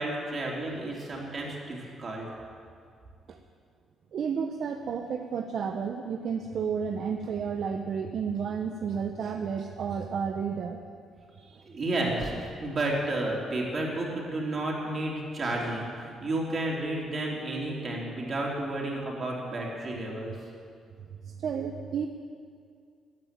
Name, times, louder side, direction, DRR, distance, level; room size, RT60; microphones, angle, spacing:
voice 1, 0.0-2.3 11.6-20.4, right 2 dB, 40° right, -2 dB, 3.5 m, -31 dB
voice 2, 4.1-10.8 11.4-11.6 21.2-22.1, right 6 dB, 60° right, 4 dB, 0.8 m, -32 dB
14.5 x 9.6 x 7.6 m, 2.2 s
cardioid pair, 90°, 0 cm